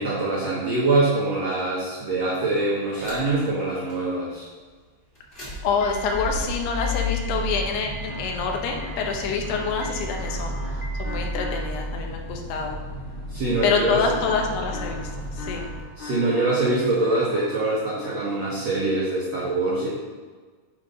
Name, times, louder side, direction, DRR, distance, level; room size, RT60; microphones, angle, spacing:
voice 1, 0.0-4.5 13.3-14.0 16.0-19.9, right 2 dB, 90° right, -6 dB, 1.4 m, -24 dB
sound 1, 3.0-3.5 3.9-4.0 5.2-15.8, equal, 35° left, 0.9 m, -32 dB
voice 2, 5.6-10.6 11.0-12.8 13.6-15.7, left 5 dB, 80° left, 2 dB, 2.8 m, -26 dB
sound 2, 7.7-12.1 14.0-16.7 17.0-18.2, left 2 dB, 55° left, 2.3 m, -40 dB
8.5 x 3.7 x 5.2 m, 1.4 s
omnidirectional pair, 4.8 m